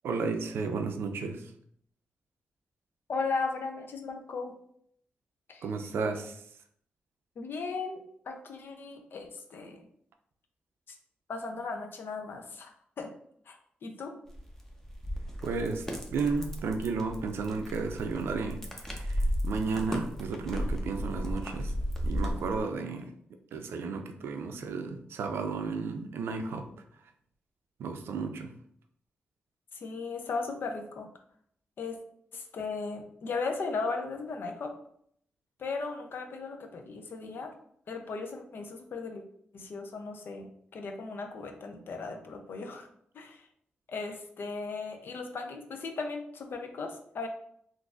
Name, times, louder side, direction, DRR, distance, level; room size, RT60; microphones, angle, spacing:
voice 1, 0.0-1.5 5.6-6.4 15.4-21.7 22.0-23.1 23.5-26.7 27.8-28.5, right 4 dB, 80° right, 6 dB, 0.4 m, -33 dB
voice 2, 3.1-4.6 5.5-5.7 7.4-9.9 10.9-11.0 11.3-13.1 13.5-13.6 13.8-14.2 29.7-31.1 31.8-32.0 32.3-34.7 35.6-37.5 37.9-39.2 39.5-42.9 43.1-43.5 43.9-47.3, left 4 dB, 65° left, 4 dB, 0.6 m, -37 dB
sound 1, 14.3-22.6, equal, 10° left, 0.8 m, -34 dB
3.8 x 2.5 x 2.4 m, 0.67 s
cardioid pair, 55°, 4 cm